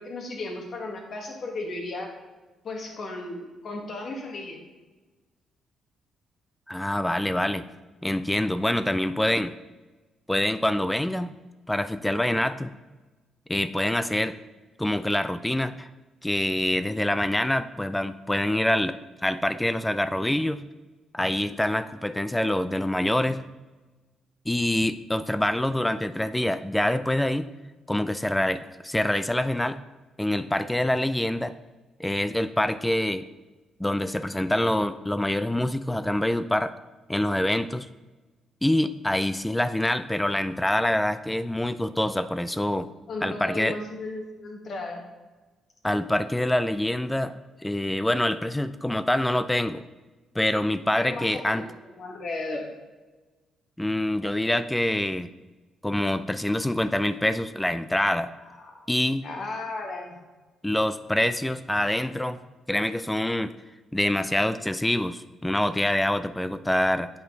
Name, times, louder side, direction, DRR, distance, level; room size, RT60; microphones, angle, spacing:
voice 1, 0.0-2.1 2.6-4.6 43.1-45.0 51.0-52.7 58.6-58.9 59.2-60.2, left 2 dB, 55° left, 2 dB, 1.8 m, -35 dB
voice 2, 6.7-7.6 8.0-9.5 10.3-11.3 11.7-12.7 13.5-14.4 14.8-15.9 16.2-19.0 19.2-20.6 21.1-23.4 24.5-27.5 27.9-29.8 30.2-31.5 32.0-33.3 33.8-36.7 37.1-37.9 38.6-42.9 43.2-43.8 45.8-47.3 47.6-49.8 50.4-51.6 53.8-55.3 55.8-58.3 58.9-59.3 60.6-62.4 62.7-63.5 63.9-67.1, left 1 dB, 10° left, 13 dB, 0.3 m, -25 dB
8.6 x 5.3 x 3.8 m, 1.2 s
cardioid pair, 90°, 0 cm